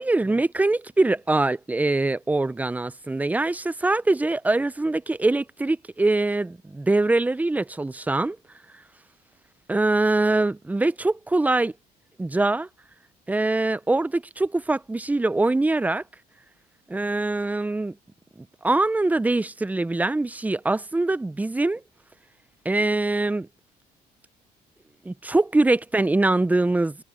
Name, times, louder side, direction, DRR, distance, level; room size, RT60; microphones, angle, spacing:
voice 1, 0.0-8.4 9.7-11.7 12.2-12.7 13.3-16.0 16.9-18.0 18.4-21.8 22.6-23.5 25.0-27.0, right 2 dB, 10° right, 0.5 m, -23 dB
cardioid pair, 110°, 17 cm